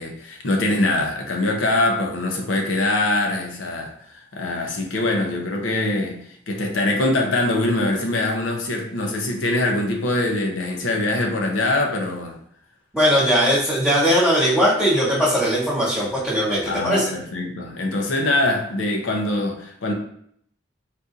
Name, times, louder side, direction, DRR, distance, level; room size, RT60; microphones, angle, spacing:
voice 1, 0.0-6.2 6.5-12.4 16.7-19.9, left 2 dB, 75° left, 1 dB, 0.6 m, -23 dB
voice 2, 12.9-17.0, equal, 5° left, -10 dB, 1.3 m, -19 dB
4.0 x 2.6 x 2.4 m, 0.65 s
head